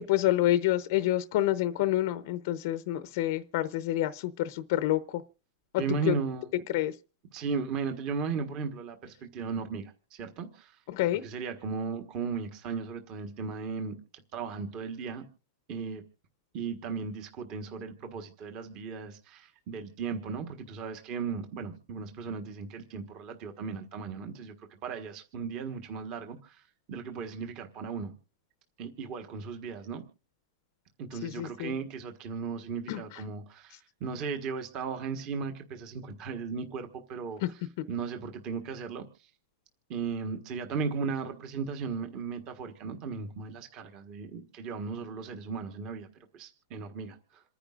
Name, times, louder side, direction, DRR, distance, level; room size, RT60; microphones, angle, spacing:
voice 1, 0.0-5.2 6.1-6.2 6.7-6.9 10.9-11.2 31.2-31.7 32.9-33.0, left 14 dB, 45° left, 0.7 m, -28 dB
voice 2, 5.8-6.5 7.3-10.8 11.2-15.2 15.7-16.0 16.5-24.5 24.8-28.1 28.8-30.0 31.0-37.6 37.9-39.0 39.9-46.1 46.3-47.4, right 5 dB, 30° right, 1.4 m, -36 dB
27.5 x 10.0 x 2.5 m
supercardioid pair, 170°, 2 cm